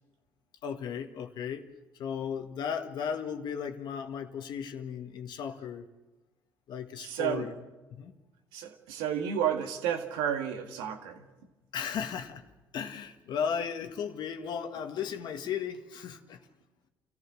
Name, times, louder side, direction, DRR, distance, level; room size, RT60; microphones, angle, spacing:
voice 1, 0.6-1.7 2.0-5.8 6.7-7.5 7.9-8.1 11.7-12.4 12.7-16.4, left 7 dB, 65° left, 6 dB, 1.7 m, -35 dB
voice 2, 7.0-7.5 8.5-11.3, right 9 dB, 85° right, 5 dB, 1.9 m, -31 dB
28.5 x 14.5 x 6.3 m, 1.1 s
supercardioid pair, 65°, 8 cm